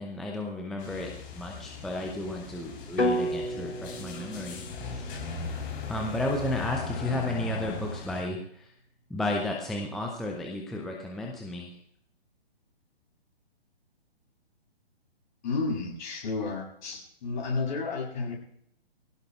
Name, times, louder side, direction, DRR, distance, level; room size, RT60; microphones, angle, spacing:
voice 1, 0.0-4.6 4.9-5.1 5.9-8.7 9.1-11.7, left 2 dB, ahead, 0 dB, 0.5 m, -33 dB
sound 1, 0.8-8.2, left 3 dB, 25° left, 3.8 m, -38 dB
sound 2, 3.0-7.0, left 1 dB, 85° left, 2.0 m, -33 dB
voice 2, 15.4-18.4, left 4 dB, 45° left, 0 dB, 7.2 m, -31 dB
23.5 x 17.0 x 2.4 m, 0.71 s
figure-of-eight pair, 135°, 32 cm